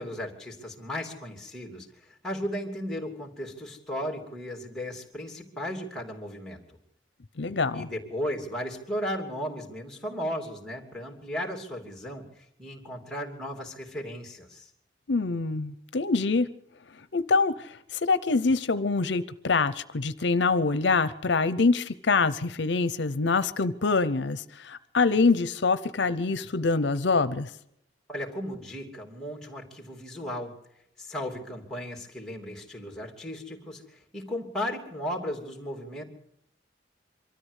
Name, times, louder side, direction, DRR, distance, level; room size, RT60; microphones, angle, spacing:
voice 1, 0.0-6.8 7.7-14.7 28.1-30.5 31.0-36.0, equal, 5° left, 2.9 m, -35 dB
voice 2, 7.4-7.9 15.1-16.5 17.1-27.5, left 4 dB, 70° left, 0.7 m, -25 dB
24.0 x 13.5 x 8.2 m
head